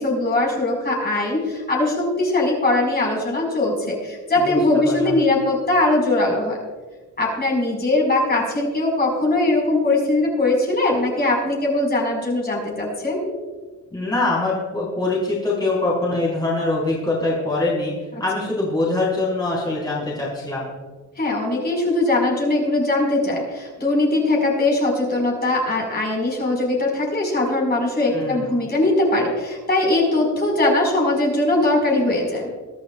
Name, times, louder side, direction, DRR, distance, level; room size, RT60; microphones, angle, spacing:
voice 1, 0.0-6.6 7.2-13.2 21.2-32.5, left 2 dB, 30° left, -2 dB, 5.0 m, -21 dB
voice 2, 13.9-17.9 18.2-20.7 28.1-28.5, left 2 dB, 15° left, -6 dB, 4.4 m, -23 dB
23.0 x 12.0 x 2.4 m, 1.4 s
cardioid pair, 115°, 31 cm